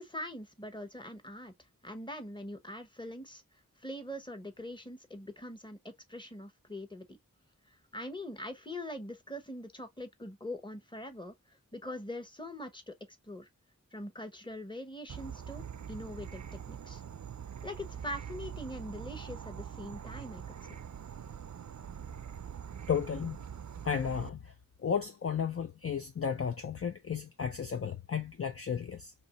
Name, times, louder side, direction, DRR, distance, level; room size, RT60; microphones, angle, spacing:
voice 1, 0.0-1.5 1.8-3.4 3.8-7.2 7.7-12.9 13.2-13.5 13.9-17.0 17.6-20.4 20.7-20.8, left 1 dB, 15° left, 1.0 m, -43 dB
Insect / Frog, 15.1-24.3, right 8 dB, 60° right, 0.5 m, -44 dB
voice 2, 22.9-23.4 23.8-24.5 24.8-29.1, left 7 dB, 45° left, 0.5 m, -33 dB
2.9 x 2.6 x 4.0 m
wide cardioid pair, 50°, 33 cm